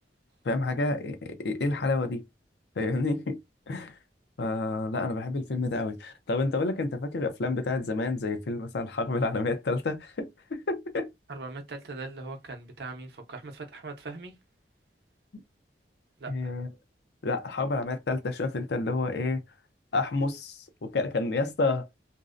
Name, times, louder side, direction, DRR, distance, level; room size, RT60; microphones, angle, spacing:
voice 1, 0.4-2.2 2.8-3.4 3.7-3.9 4.4-11.1 16.3-16.7 17.2-19.4 19.9-21.9, left 3 dB, 70° left, 0.5 m, -29 dB
voice 2, 11.3-14.4 16.2-16.5, right 3 dB, 65° right, 0.6 m, -40 dB
2.6 x 2.0 x 2.4 m
head